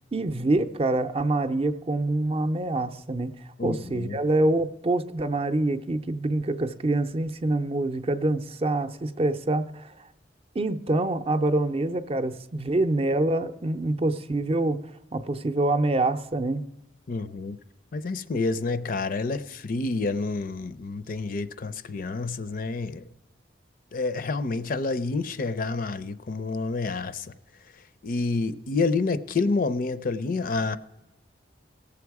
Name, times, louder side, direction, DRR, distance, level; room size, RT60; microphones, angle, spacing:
voice 1, 0.1-3.3 3.6-9.9 10.5-14.8 15.1-16.6, right 2 dB, 35° right, 0.5 m, -25 dB
voice 2, 3.6-4.2 17.1-17.6 17.9-23.0 23.9-27.3 28.0-30.8, left 3 dB, 50° left, 0.5 m, -28 dB
17.5 x 7.1 x 4.7 m
head